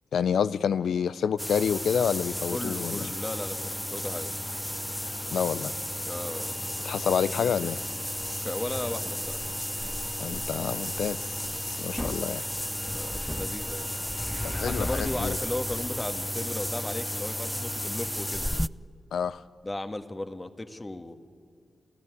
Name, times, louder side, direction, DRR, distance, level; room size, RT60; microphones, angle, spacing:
voice 1, 0.1-3.1 5.3-5.7 6.8-7.8 10.2-11.4 11.7-12.4 14.4-15.4 19.1-19.4, left 7 dB, 80° left, 0.5 m, -28 dB
sound 1, 1.4-18.7, equal, 5° left, 0.5 m, -33 dB
voice 2, 2.5-4.3 6.0-6.5 8.4-9.4 12.9-13.9 14.6-18.5 19.6-21.1, left 2 dB, 25° left, 1.6 m, -35 dB
28.5 x 14.0 x 9.6 m
cardioid pair, 55°, 0 cm